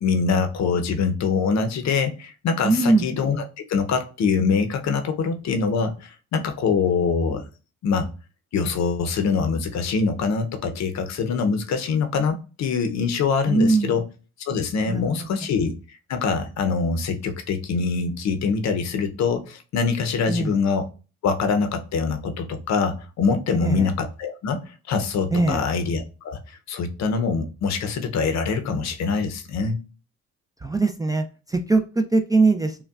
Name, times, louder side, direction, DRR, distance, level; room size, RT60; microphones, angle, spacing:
voice 1, 0.0-3.4 3.7-7.4 7.8-8.1 8.5-14.0 14.5-15.7 16.1-20.9 21.2-26.4 26.7-29.8, left 5 dB, 65° left, 8 dB, 0.6 m, -24 dB
voice 2, 2.6-3.1 13.5-14.0 14.9-15.3 20.3-20.5 23.6-23.9 25.3-25.6 30.6-32.8, right 3 dB, 15° right, 6 dB, 0.3 m, -21 dB
5.5 x 2.2 x 2.3 m, 0.34 s
cardioid pair, 90°, 30 cm